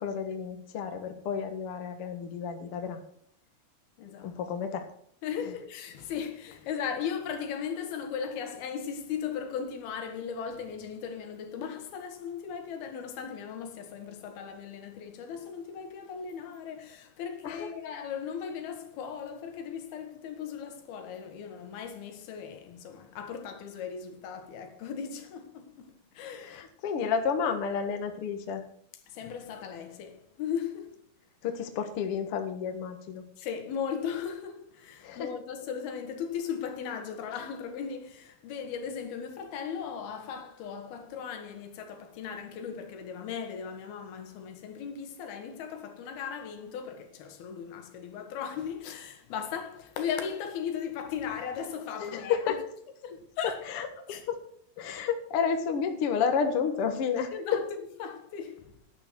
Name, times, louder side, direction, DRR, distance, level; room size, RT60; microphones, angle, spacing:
voice 1, 0.0-3.0 4.2-4.9 17.4-17.7 26.4-28.6 31.4-33.2 35.0-35.3 52.0-52.6 53.7-54.4 54.8-57.3, left 6 dB, 55° left, 1.7 m, -31 dB
voice 2, 4.0-4.4 5.2-26.6 29.1-31.0 33.4-52.5 53.0-53.6 54.1-54.3 57.3-57.7 58.0-58.7, left 7 dB, 80° left, 3.4 m, -37 dB
11.5 x 10.5 x 4.6 m
omnidirectional pair, 4.4 m